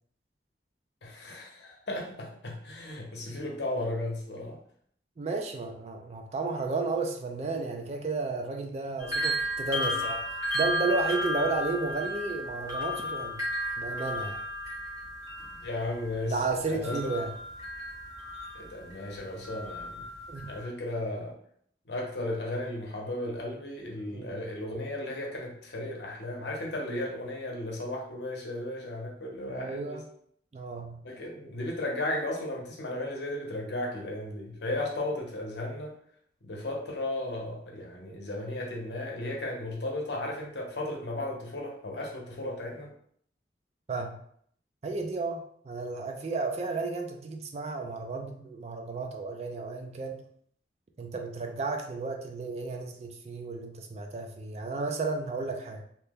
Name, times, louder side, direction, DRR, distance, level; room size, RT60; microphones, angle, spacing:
voice 1, 1.0-4.6 15.4-16.4 16.7-17.1 18.5-20.1 20.5-21.3 21.9-30.0 31.0-35.9 36.4-42.9, left 1 dB, 75° left, -1 dB, 0.8 m, -35 dB
voice 2, 5.2-13.4 13.8-14.4 16.2-17.3 20.3-20.5 24.1-24.4 29.5-30.0 30.5-31.0 43.9-44.2 44.8-50.2 51.0-55.8, right 3 dB, 40° right, 4 dB, 0.4 m, -33 dB
sound 1, 9.0-19.1 19.4-20.6, equal, 20° right, 0.8 m, -34 dB
2.8 x 2.2 x 3.4 m, 0.64 s
head